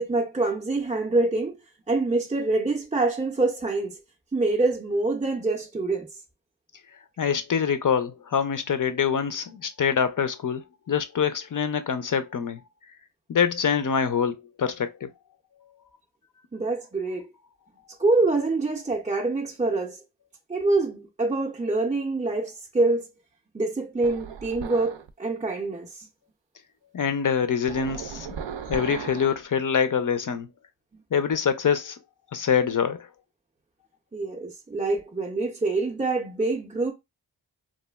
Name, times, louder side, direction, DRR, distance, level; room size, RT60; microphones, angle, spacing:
voice 1, 0.0-1.6 1.9-4.0 4.3-6.1 16.5-17.3 18.0-20.0 20.5-23.1 23.5-26.1 30.9-31.0 34.1-36.9, right 3 dB, 15° right, 0.4 m, -25 dB
voice 2, 7.2-12.6 13.3-15.1 26.9-28.3 28.7-30.5 31.1-32.0 32.3-33.1, left 7 dB, 45° left, 0.5 m, -25 dB
sound 1, 24.0-25.1 27.7-29.4, right 7 dB, 65° right, 0.5 m, -36 dB
3.0 x 2.4 x 2.2 m
cardioid pair, 55°, 47 cm